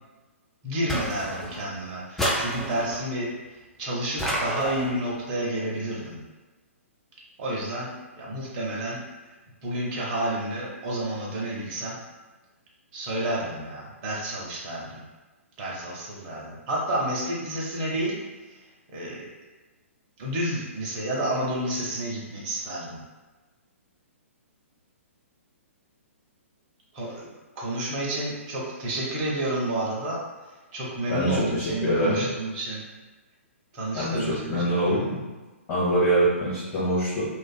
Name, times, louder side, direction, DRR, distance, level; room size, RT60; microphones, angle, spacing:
voice 1, 0.6-6.2 7.4-9.0 9.6-12.0 12.9-15.0 15.6-18.2 18.4-18.6 18.9-19.2 20.2-23.0 26.9-27.3 27.6-30.2 30.7-32.8 33.7-35.2, right 1 dB, 30° right, -4 dB, 0.7 m, -30 dB
sound 1, 0.9-1.7 2.2-3.1 4.2-5.0, equal, 5° left, 0.3 m, -29 dB
voice 2, 31.1-32.2 33.9-35.2 35.7-37.3, right 1 dB, 25° left, -11 dB, 0.9 m, -24 dB
2.5 x 2.3 x 2.2 m, 1.2 s
figure-of-eight pair, 120°, 7 cm